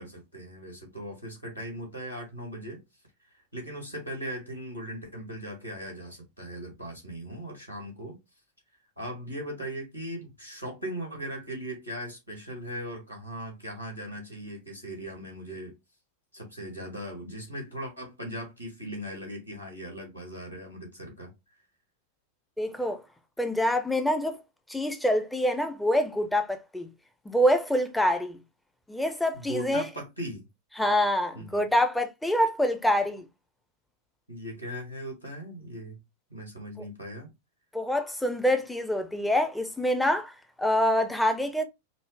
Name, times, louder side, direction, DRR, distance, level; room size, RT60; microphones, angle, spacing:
voice 1, 0.0-2.8 3.3-8.2 9.0-15.7 16.3-21.3 29.3-30.5 31.3-31.6 34.3-36.0 36.3-37.3, equal, 85° left, 1.9 m, -39 dB
voice 2, 22.6-23.0 23.4-24.4 24.7-26.9 27.3-28.4 28.9-29.9 30.8-33.3 37.7-41.6, equal, 5° left, 0.5 m, -26 dB
5.2 x 2.1 x 3.2 m
figure-of-eight pair, 90°, 0 cm